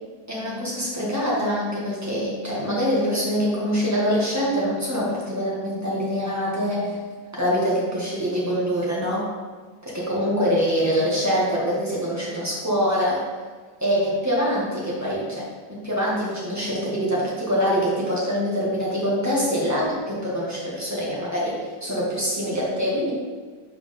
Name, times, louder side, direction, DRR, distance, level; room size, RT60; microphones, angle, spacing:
voice 1, 0.3-7.0 7.3-9.3 9.8-13.2 13.8-23.1, equal, 10° right, -7 dB, 1.7 m, -24 dB
4.9 x 4.7 x 5.4 m, 1.5 s
omnidirectional pair, 1.9 m